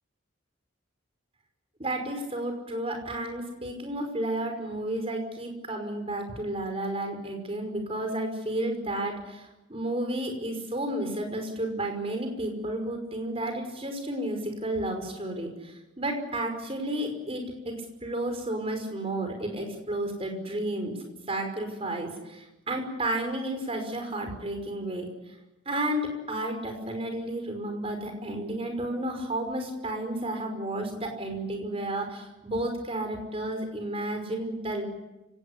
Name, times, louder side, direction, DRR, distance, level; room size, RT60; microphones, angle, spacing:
voice 1, 1.8-17.8 18.0-21.0 21.3-25.1 25.7-34.8, right 1 dB, 30° right, 4 dB, 5.6 m, -32 dB
30.0 x 18.0 x 8.4 m, 1.0 s
head